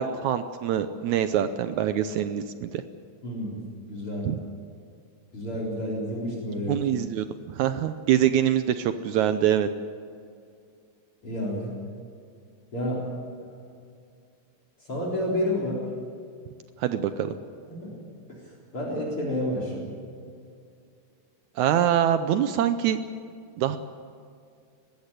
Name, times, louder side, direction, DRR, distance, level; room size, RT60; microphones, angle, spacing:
voice 1, 0.0-2.8 4.3-4.4 6.7-9.7 16.8-17.4 21.6-23.0 23.6-23.8, right 10 dB, 75° right, 10 dB, 1.9 m, -24 dB
voice 2, 3.2-3.6 3.9-4.3 5.3-6.8 11.2-11.7 12.7-13.0 13.4-13.6 14.9-15.8 17.7-17.9 18.3-19.9, left 1 dB, 40° left, -3 dB, 4.8 m, -30 dB
20.0 x 15.5 x 9.9 m, 2.3 s
omnidirectional pair, 3.7 m